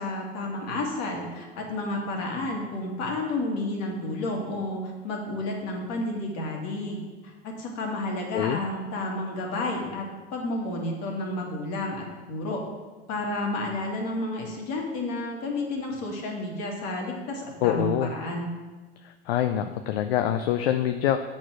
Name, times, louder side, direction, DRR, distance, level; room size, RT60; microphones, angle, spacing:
voice 1, 0.0-10.1 10.3-12.6 13.1-18.5, left 2 dB, 55° left, 0 dB, 2.1 m, -31 dB
voice 2, 17.6-18.1 19.3-21.2, left 11 dB, 75° left, 8 dB, 0.5 m, -25 dB
7.6 x 4.4 x 6.2 m, 1.3 s
hypercardioid pair, 90°, 31 cm